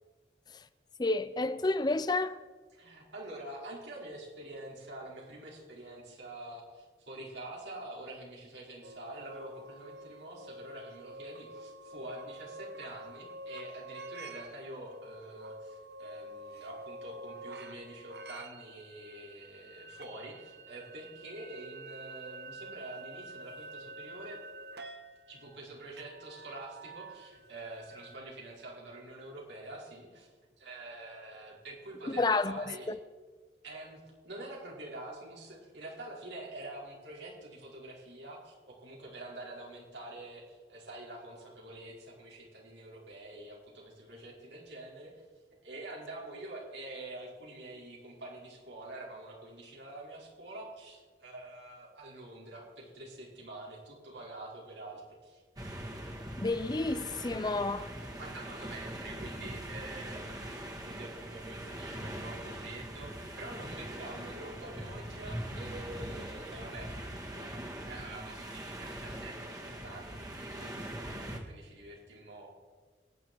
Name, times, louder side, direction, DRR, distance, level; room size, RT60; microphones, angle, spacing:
voice 1, 1.0-2.4 32.1-32.7 56.4-57.9, left 3 dB, 25° left, 0.5 m, -30 dB
voice 2, 2.7-24.4 25.3-30.3 30.6-33.0 33.6-45.2 45.6-55.4 58.2-72.5, right 2 dB, 90° right, 5.2 m, -46 dB
sound 1, 8.8-28.2, right 1 dB, 65° right, 1.2 m, -48 dB
sound 2, 55.6-71.4, right 1 dB, 20° right, 1.9 m, -42 dB
25.5 x 10.0 x 4.7 m
head